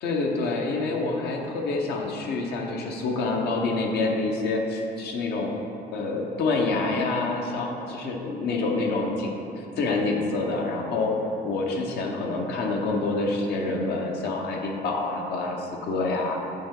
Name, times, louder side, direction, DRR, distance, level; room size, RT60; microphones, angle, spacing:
voice 1, 0.0-5.5 5.9-11.1 11.4-16.4, left 3 dB, 75° left, 1 dB, 1.0 m, -27 dB
8.5 x 4.4 x 3.8 m, 2.8 s
cardioid pair, 110°, 17 cm